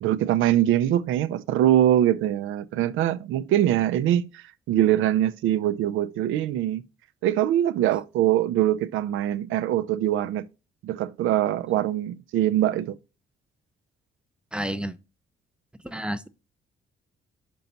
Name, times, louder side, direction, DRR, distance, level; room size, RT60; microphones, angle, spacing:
voice 1, 0.0-6.9 7.2-10.5 10.8-13.0, right 12 dB, 85° right, 0.5 m, -23 dB
voice 2, 14.5-15.0 15.8-16.3, equal, 5° right, 0.4 m, -30 dB
5.4 x 4.0 x 5.7 m
cardioid pair, 90°, 20 cm